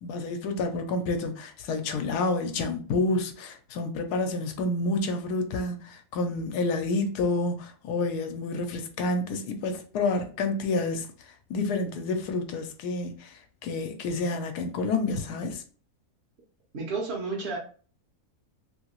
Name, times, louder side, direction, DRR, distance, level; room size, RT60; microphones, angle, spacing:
voice 1, 0.0-11.1 11.5-15.6, left 2 dB, 80° left, 1.1 m, -29 dB
voice 2, 16.7-17.6, right 4 dB, 50° right, 0.9 m, -31 dB
2.8 x 2.7 x 2.9 m
omnidirectional pair, 1.7 m